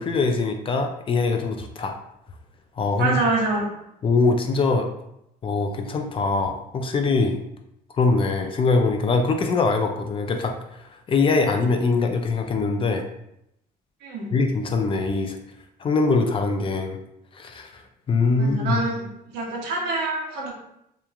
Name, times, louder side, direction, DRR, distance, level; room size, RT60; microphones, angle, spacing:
voice 1, 0.0-1.9 2.8-3.2 4.0-4.9 5.4-7.5 8.0-10.5 11.1-13.0 14.3-15.4 15.8-17.0 17.3-17.8 18.1-18.8, left 3 dB, 30° left, 4 dB, 0.3 m, -22 dB
voice 2, 3.0-3.6 14.0-14.3 18.3-20.5, right 3 dB, 80° right, -2 dB, 0.9 m, -26 dB
3.0 x 2.3 x 2.3 m, 0.80 s
cardioid pair, 110°, 17 cm